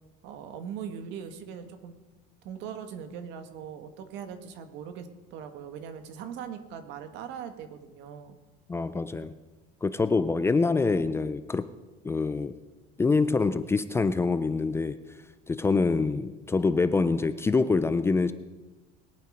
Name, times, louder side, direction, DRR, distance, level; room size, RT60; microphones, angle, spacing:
voice 1, 0.2-2.0 2.4-8.3, right 7 dB, 70° right, 8 dB, 1.7 m, -40 dB
voice 2, 8.7-9.3 9.8-11.7 12.0-12.6 13.0-15.0 15.5-18.3, left 4 dB, 15° left, 12 dB, 0.4 m, -25 dB
21.5 x 8.8 x 5.1 m, 1.2 s
cardioid pair, 145°, 19 cm